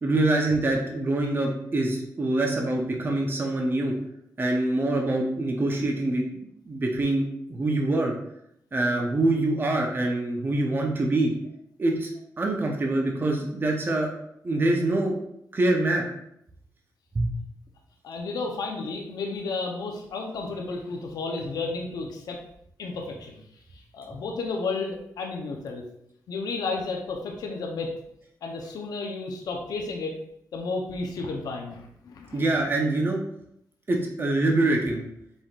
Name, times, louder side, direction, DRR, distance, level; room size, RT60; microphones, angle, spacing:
voice 1, 0.0-3.9 4.4-8.1 8.7-11.3 11.8-14.1 14.4-15.1 15.5-16.0 17.1-17.4 32.3-33.2 33.9-35.0, right 2 dB, 30° right, 0 dB, 0.7 m, -25 dB
voice 2, 18.0-22.4 22.8-23.4 23.7-25.8 26.3-27.9 28.4-30.2 30.5-32.7, left 3 dB, 75° left, 2 dB, 0.7 m, -32 dB
5.2 x 3.7 x 2.4 m, 0.75 s
cardioid pair, 80°, 7 cm